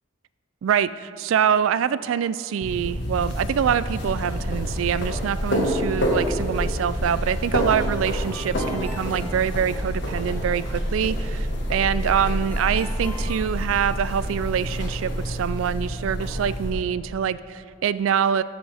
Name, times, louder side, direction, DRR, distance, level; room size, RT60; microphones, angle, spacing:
voice 1, 0.6-18.4, right 8 dB, 80° right, 16 dB, 0.3 m, -25 dB
sound 1, 2.6-16.7, equal, 60° left, 1.5 m, -27 dB
Ringtone, 8.3-10.2 12.5-14.4, left 2 dB, 10° left, 0.9 m, -43 dB
13.5 x 7.8 x 3.4 m, 2.3 s
head